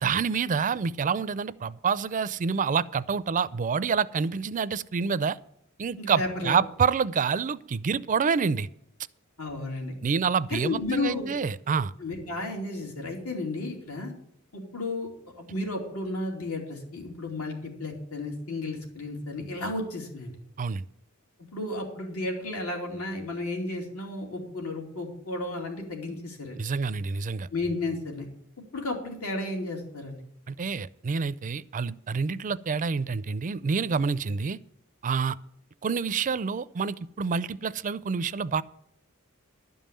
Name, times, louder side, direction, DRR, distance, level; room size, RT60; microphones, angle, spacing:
voice 1, 0.0-5.4 5.8-8.7 10.0-11.9 20.6-20.9 26.6-27.5 30.5-34.6 35.0-35.4 35.8-38.6, right 5 dB, 35° right, 17 dB, 0.4 m, -27 dB
voice 2, 6.0-6.6 9.4-9.9 10.5-11.3 12.0-14.1 14.5-15.1 15.3-20.3 21.5-26.6 27.5-28.3 28.7-30.2, left 2 dB, 85° left, 1 dB, 3.3 m, -33 dB
12.0 x 5.5 x 8.8 m, 0.74 s
head